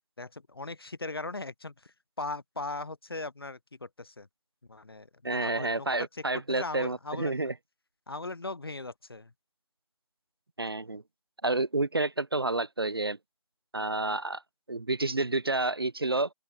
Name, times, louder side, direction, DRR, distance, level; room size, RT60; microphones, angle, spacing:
voice 1, 0.2-4.3 4.7-5.1 5.3-6.1 6.3-7.5 8.1-9.3, left 3 dB, 40° left, 0.5 m, -39 dB
voice 2, 5.2-7.5 10.6-11.0 11.4-13.2 13.7-14.4 14.7-16.3, right 2 dB, 40° right, 0.5 m, -29 dB
open air
figure-of-eight pair, 175°, 20 cm